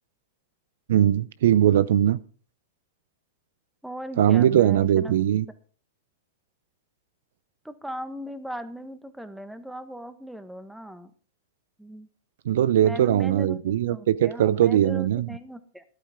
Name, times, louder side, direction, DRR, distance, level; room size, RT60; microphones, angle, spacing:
voice 1, 0.9-2.2 4.2-5.4 12.5-15.3, right 11 dB, 70° right, 0.6 m, -20 dB
voice 2, 3.8-5.2 7.6-11.1 11.8-12.1 12.8-15.8, equal, 5° right, 1.4 m, -38 dB
13.5 x 11.5 x 3.7 m
hypercardioid pair, 105°, 0 cm